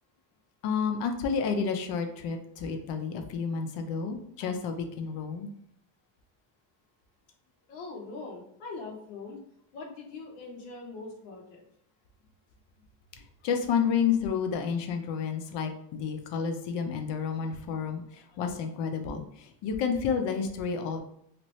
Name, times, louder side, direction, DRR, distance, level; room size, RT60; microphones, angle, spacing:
voice 1, 0.6-5.5 13.2-21.0, left 6 dB, 65° left, 5 dB, 0.7 m, -30 dB
voice 2, 7.7-9.4 9.7-11.6, left 3 dB, 90° left, 0 dB, 1.0 m, -42 dB
2.8 x 2.6 x 3.1 m, 0.72 s
cardioid pair, 130°, 46 cm